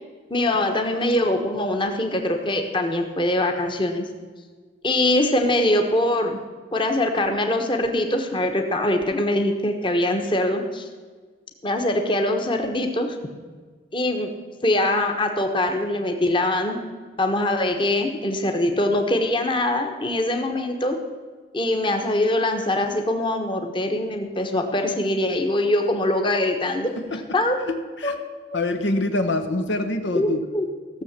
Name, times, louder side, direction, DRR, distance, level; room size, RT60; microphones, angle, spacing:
voice 1, 0.3-4.0 4.8-6.4 6.7-10.8 11.6-13.2 13.9-14.3 14.6-16.8 17.2-21.0 21.5-26.9 27.3-27.6 28.0-28.1 28.5-28.6 30.1-30.3 30.5-30.7, left 1 dB, 25° left, 4 dB, 1.2 m, -23 dB
voice 2, 27.7-28.1 28.5-30.4, left 2 dB, 75° left, 7 dB, 1.0 m, -25 dB
15.5 x 7.2 x 7.4 m, 1.5 s
head